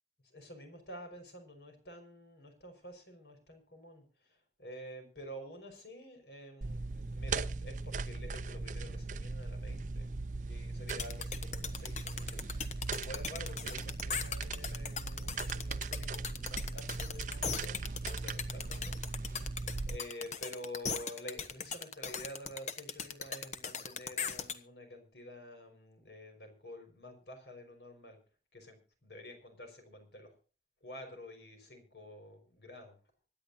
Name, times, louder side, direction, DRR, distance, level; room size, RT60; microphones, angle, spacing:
voice 1, 0.3-10.1 10.4-12.4 13.0-19.0 19.9-28.2 28.5-30.3 30.8-33.0, equal, 75° left, 5 dB, 5.4 m, -49 dB
sound 1, 6.6-20.0, right 3 dB, 45° right, 0.5 m, -39 dB
sound 2, 10.9-24.6, left 6 dB, 40° left, 1.1 m, -38 dB
25.5 x 10.5 x 2.8 m, 0.37 s
head